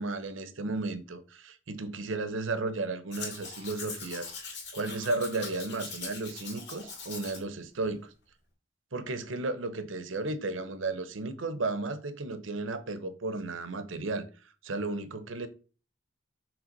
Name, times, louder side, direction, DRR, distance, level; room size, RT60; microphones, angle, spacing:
voice 1, 0.0-8.1 8.9-14.3 14.6-15.5, right 3 dB, 90° right, 0.8 m, -34 dB
Domestic sounds home sounds, 3.1-7.4 7.8-7.9, left 4 dB, 65° left, 2.4 m, -42 dB
6.2 x 3.5 x 5.2 m
head